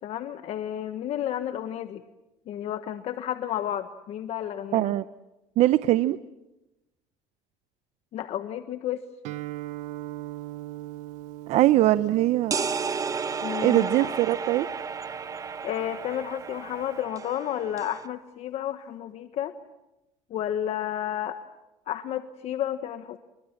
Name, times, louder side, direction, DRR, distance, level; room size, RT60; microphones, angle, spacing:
voice 1, 0.0-2.0 2.5-4.9 8.1-9.0 13.4-14.1 15.6-19.5 20.3-21.4 21.9-23.2, left 11 dB, 60° left, 9 dB, 1.4 m, -31 dB
voice 2, 4.7-5.0 5.6-6.2 11.5-12.5 13.6-14.7, right 15 dB, 65° right, 14 dB, 0.8 m, -21 dB
Guitar, 9.2-17.0, right 16 dB, 80° right, 1.2 m, -41 dB
sound 1, 12.5-18.1, right 5 dB, 25° right, 1.2 m, -33 dB
29.5 x 24.0 x 7.3 m, 0.99 s
cardioid pair, 110°, 12 cm